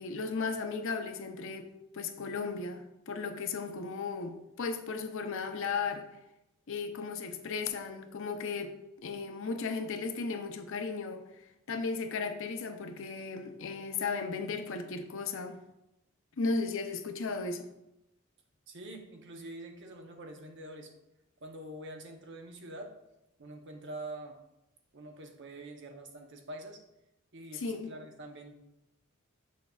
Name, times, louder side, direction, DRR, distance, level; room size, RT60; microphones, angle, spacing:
voice 1, 0.0-1.7 1.9-6.1 6.7-11.2 11.7-15.6 16.4-17.7 27.5-27.9, left 4 dB, 65° left, 7 dB, 0.6 m, -35 dB
voice 2, 18.7-20.9 21.4-22.9 23.4-24.4 24.9-26.8 27.3-28.5, right 1 dB, 60° right, 3 dB, 0.9 m, -45 dB
6.8 x 6.3 x 2.4 m, 0.89 s
head